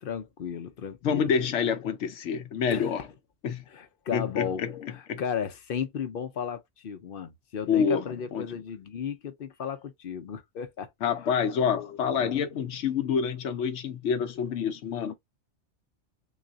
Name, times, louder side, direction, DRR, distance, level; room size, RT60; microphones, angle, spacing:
voice 1, 0.0-1.3 2.7-3.0 3.7-10.9 11.7-12.4, left 7 dB, 55° left, 0.7 m, -35 dB
voice 2, 1.0-3.0 3.4-3.6 4.1-5.2 7.7-8.0 8.3-8.5 11.0-15.1, left 7 dB, 80° left, 0.9 m, -27 dB
4.0 x 2.3 x 3.8 m
omnidirectional pair, 1.2 m